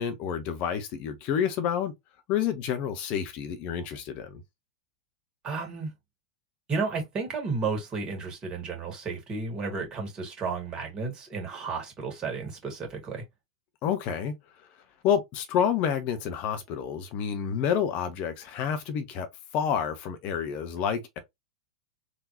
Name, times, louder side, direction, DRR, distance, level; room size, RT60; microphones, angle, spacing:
voice 1, 0.0-1.9 2.3-4.4 13.8-14.3 15.0-19.3 19.5-21.2, left 8 dB, 45° left, 0.9 m, -29 dB
voice 2, 5.4-5.9 6.7-13.2, right 4 dB, 30° right, 2.1 m, -32 dB
3.8 x 2.9 x 2.7 m
figure-of-eight pair, 95°, 3 cm